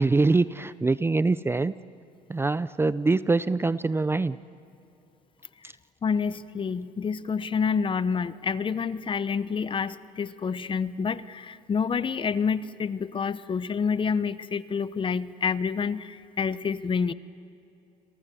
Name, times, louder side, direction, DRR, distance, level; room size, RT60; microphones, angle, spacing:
voice 1, 0.0-1.7 2.3-4.4 5.6-5.7, right 3 dB, 15° right, 16 dB, 0.5 m, -24 dB
voice 2, 6.0-17.1, left 6 dB, 35° left, 15 dB, 0.9 m, -28 dB
29.5 x 22.5 x 7.0 m, 2.7 s
supercardioid pair, 90°, 15 cm